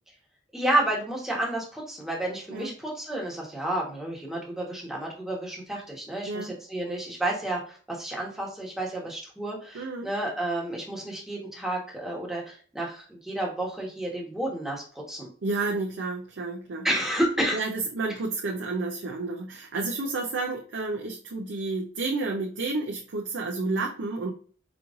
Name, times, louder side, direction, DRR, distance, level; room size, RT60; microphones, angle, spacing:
voice 1, 0.5-14.8 15.1-15.3 16.8-17.6, right 1 dB, ahead, -3 dB, 1.2 m, -30 dB
voice 2, 9.7-10.1 15.4-16.9 17.5-24.3, right 3 dB, 75° right, 0 dB, 0.6 m, -30 dB
5.0 x 3.1 x 2.5 m, 0.41 s
head